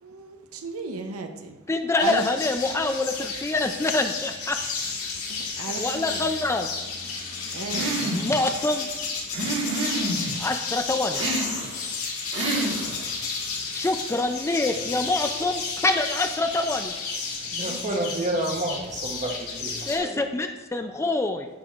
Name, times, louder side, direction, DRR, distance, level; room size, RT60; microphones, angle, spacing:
voice 1, 0.0-1.6 2.0-2.3 2.7-2.8 5.3-6.3 7.5-8.0 17.5-17.8, right 4 dB, 80° right, 6 dB, 0.7 m, -35 dB
voice 2, 1.7-4.6 5.8-6.7 8.0-8.9 10.4-11.2 13.7-16.9 19.9-21.5, left 2 dB, 15° left, 6 dB, 0.3 m, -25 dB
sound 1, 2.0-20.0, left 4 dB, 90° left, 1.7 m, -32 dB
sound 2, 7.7-8.4 9.3-10.4 11.1-11.8 12.3-13.1, right 2 dB, 60° right, 1.6 m, -28 dB
voice 3, 17.6-20.2, right 1 dB, 35° right, 2 dB, 1.0 m, -30 dB
11.0 x 6.0 x 2.4 m, 1.1 s
head